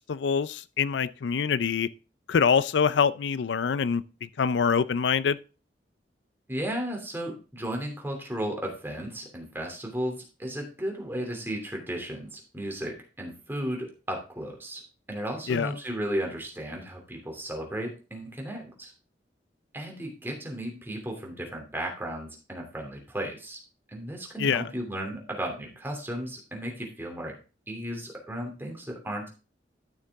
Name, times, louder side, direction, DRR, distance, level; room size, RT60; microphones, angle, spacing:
voice 1, 0.1-1.9 2.3-5.4 15.5-15.7 24.4-24.7, left 6 dB, 80° left, 0.4 m, -25 dB
voice 2, 6.5-14.8 15.1-18.9 19.7-23.6 23.9-27.4 27.7-29.3, right 1 dB, 15° right, 2.8 m, -34 dB
12.5 x 6.7 x 3.5 m
head